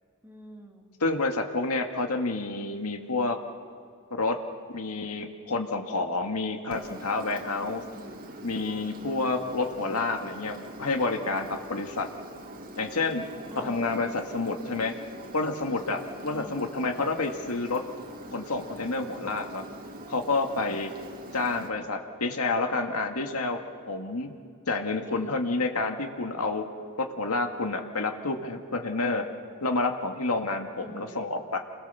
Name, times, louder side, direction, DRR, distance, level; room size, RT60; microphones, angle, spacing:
voice 1, 0.2-0.9 7.8-8.3 13.5-13.9 16.3-16.7 25.1-25.5 30.8-31.2, equal, 10° right, 1 dB, 2.6 m, -47 dB
voice 2, 1.0-3.4 4.1-4.4 4.7-7.9 8.4-12.1 12.8-13.3 13.6-15.0 15.3-17.8 18.3-19.6 20.1-20.9 21.3-23.6 23.9-24.3 24.7-26.7 27.0-29.3 29.6-31.6, left 3 dB, 85° left, 4 dB, 2.0 m, -29 dB
Engine, 6.7-21.7, right 1 dB, 40° right, 2.0 m, -43 dB
28.5 x 21.5 x 7.0 m, 2.3 s
head